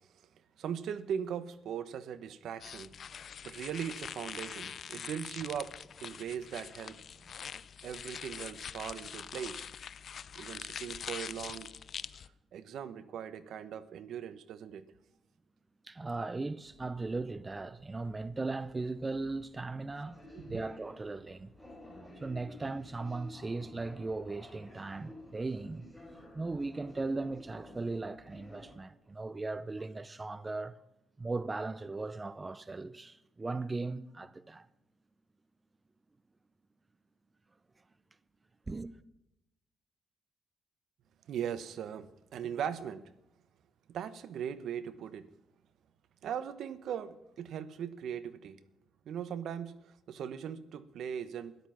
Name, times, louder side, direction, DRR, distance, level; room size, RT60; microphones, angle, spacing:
voice 1, 0.6-5.7 6.0-7.0 7.8-9.7 10.4-11.7 12.5-14.8 20.3-20.6 41.3-43.0 43.9-45.3 46.2-48.6 49.1-51.6, right 8 dB, 70° right, 1.0 m, -39 dB
sound 1, 2.6-12.3, left 7 dB, 55° left, 0.5 m, -44 dB
voice 2, 15.8-21.5 22.0-30.8 31.2-34.7 38.7-38.9, right 3 dB, 20° right, 0.6 m, -38 dB
sound 2, 16.6-28.7, left 1 dB, ahead, 7.0 m, -54 dB
13.5 x 11.5 x 5.9 m
cardioid pair, 90°, 0 cm